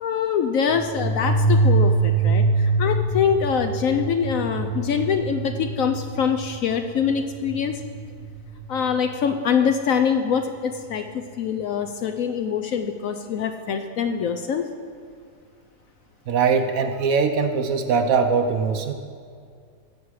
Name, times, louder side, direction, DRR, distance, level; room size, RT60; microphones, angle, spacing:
voice 1, 0.0-7.8 8.7-14.6, left 7 dB, 70° left, 7 dB, 0.8 m, -24 dB
sound 1, 0.7-9.1, right 3 dB, 85° right, 1.8 m, -24 dB
voice 2, 16.3-18.9, right 5 dB, 65° right, 7 dB, 0.9 m, -21 dB
16.5 x 6.9 x 4.8 m, 2.2 s
omnidirectional pair, 1.8 m